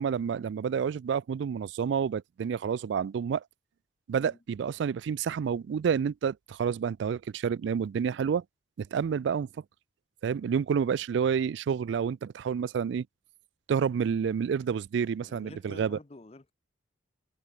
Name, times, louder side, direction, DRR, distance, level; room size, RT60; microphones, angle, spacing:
voice 1, 0.0-3.4 4.1-8.4 8.8-9.5 10.2-13.1 13.7-16.0, right 7 dB, 70° right, 0.3 m, -29 dB
voice 2, 15.2-16.5, left 2 dB, 30° left, 0.6 m, -49 dB
head